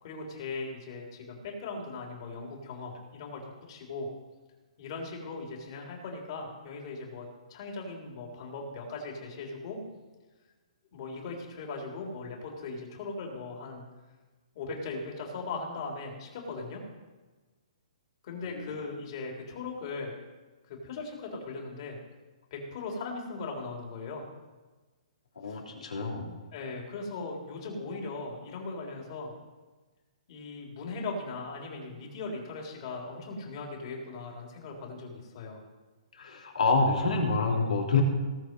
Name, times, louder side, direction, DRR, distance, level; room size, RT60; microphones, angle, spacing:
voice 1, 0.0-4.1 4.8-9.8 10.9-13.8 14.6-16.8 18.2-20.1 20.7-22.0 22.5-24.3 25.5-25.6 26.5-29.3 30.3-35.6, left 3 dB, 45° left, 0 dB, 3.5 m, -39 dB
voice 2, 25.4-26.3 36.1-38.0, left 4 dB, 85° left, -1 dB, 3.3 m, -27 dB
18.0 x 6.8 x 5.4 m, 1.3 s
hypercardioid pair, 150°, 4 cm